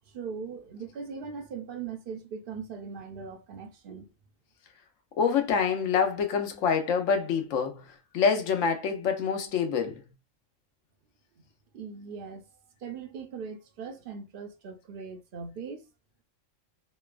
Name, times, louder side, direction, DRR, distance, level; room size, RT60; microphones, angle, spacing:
voice 1, 0.1-4.1 11.7-12.5 12.8-15.8, right 5 dB, 60° right, 0.6 m, -40 dB
voice 2, 5.2-7.8 8.1-10.0, left 6 dB, 75° left, 1.0 m, -26 dB
3.0 x 2.1 x 2.3 m
omnidirectional pair, 1.3 m